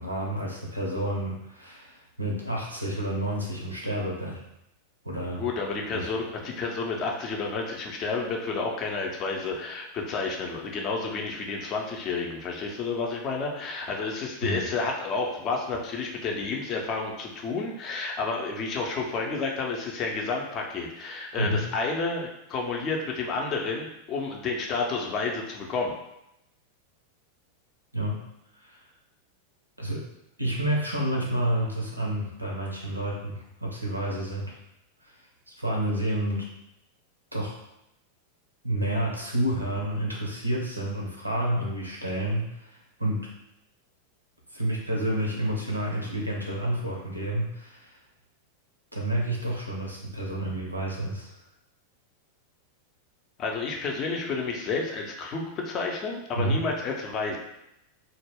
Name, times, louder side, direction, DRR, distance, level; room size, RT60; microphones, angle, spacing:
voice 1, 0.0-4.4 5.0-5.5 5.9-6.1 14.4-14.6 21.4-21.7 27.9-28.2 28.6-28.8 29.8-30.0 30.4-34.5 35.0-35.1 35.5-36.5 37.3-37.6 38.6-43.3 44.5-48.0 48.9-51.3 56.4-56.6, right 1 dB, 85° right, -2 dB, 0.6 m, -29 dB
voice 2, 5.4-25.9 53.4-57.4, left 4 dB, 35° left, 0 dB, 0.5 m, -30 dB
2.2 x 2.0 x 3.3 m, 0.83 s
figure-of-eight pair, 90°, 0 cm